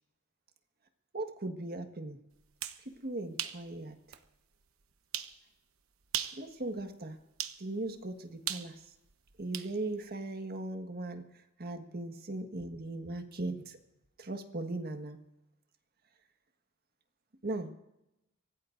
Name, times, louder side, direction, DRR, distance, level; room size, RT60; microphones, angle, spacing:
voice 1, 1.1-2.2 3.0-4.0 6.4-7.2 7.6-8.7 9.4-11.2 11.6-13.8 14.2-15.2 17.4-17.7, right 2 dB, 50° right, 6 dB, 1.5 m, -38 dB
sound 1, 2.4-2.8 3.4-3.6 4.1-4.2 5.1-5.4 6.0-6.4 7.4-7.6 8.5-9.7, right 11 dB, 80° right, 1.0 m, -37 dB
25.0 x 17.0 x 2.6 m, 0.91 s
head